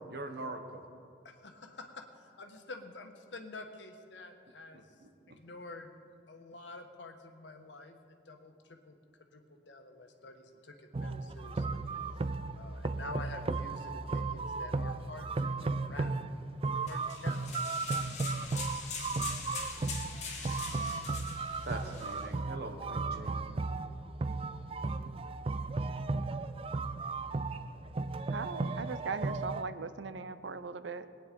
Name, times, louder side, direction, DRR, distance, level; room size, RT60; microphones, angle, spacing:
voice 1, 0.1-0.8 5.3-5.4 21.6-23.4, right 2 dB, 60° right, 5 dB, 1.4 m, -42 dB
voice 2, 1.2-4.9 5.3-5.9 6.3-8.9 9.3-11.9 12.5-15.6 15.9-16.3 16.7-17.8 18.5-18.8, left 3 dB, 80° left, 5 dB, 1.3 m, -48 dB
sound 1, 10.9-29.6, right 3 dB, 30° right, 0.4 m, -35 dB
sound 2, 16.9-22.3, left 5 dB, 40° left, 2.2 m, -42 dB
voice 3, 28.3-31.1, right 4 dB, 85° right, 13 dB, 0.6 m, -39 dB
21.5 x 9.1 x 5.2 m, 2.5 s
head